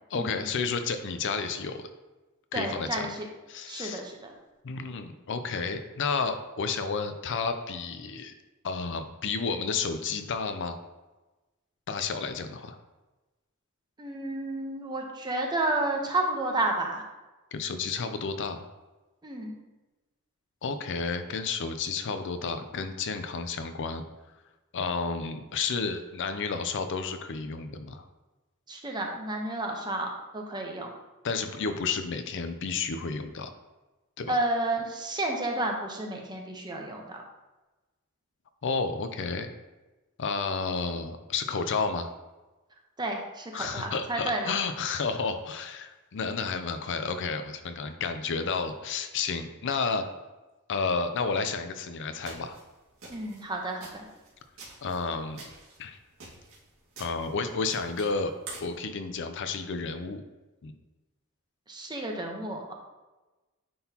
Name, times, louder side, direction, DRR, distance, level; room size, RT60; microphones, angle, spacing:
voice 1, 0.1-1.9 2.5-3.1 3.5-4.0 4.6-8.3 8.6-10.8 11.9-12.8 17.5-18.7 20.6-24.0 24.7-28.0 31.2-33.5 34.2-34.4 38.6-39.5 40.2-42.1 43.5-50.1 50.7-52.6 54.8-55.4 55.8-56.0 57.0-58.3 58.6-60.2 60.6-60.7, left 4 dB, 60° left, 8 dB, 0.5 m, -31 dB
voice 2, 2.5-3.2 3.7-4.3 14.0-17.0 19.2-19.6 28.7-30.9 34.3-37.2 43.0-44.6 53.1-54.1 61.7-62.7, right 2 dB, 20° right, 1 dB, 0.9 m, -31 dB
sound 1, 52.2-58.8, right 3 dB, 65° right, 2.1 m, -48 dB
9.3 x 3.9 x 2.9 m, 1.1 s
head